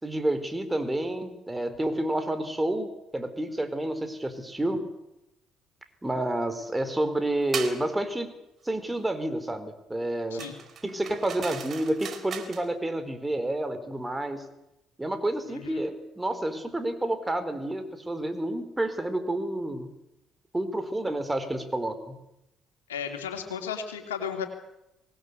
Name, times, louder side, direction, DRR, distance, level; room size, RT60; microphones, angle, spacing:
voice 1, 0.0-4.8 6.0-8.3 8.6-10.4 10.8-14.4 15.0-19.9 20.5-22.2, right 1 dB, 15° right, 9 dB, 4.4 m, -29 dB
sound 1, 7.5-7.8 10.4-12.7, right 7 dB, 55° right, 3.8 m, -37 dB
voice 2, 15.5-15.8 22.9-24.5, left 7 dB, 90° left, 5 dB, 2.9 m, -34 dB
24.5 x 19.0 x 8.4 m, 0.88 s
hypercardioid pair, 55°, 0 cm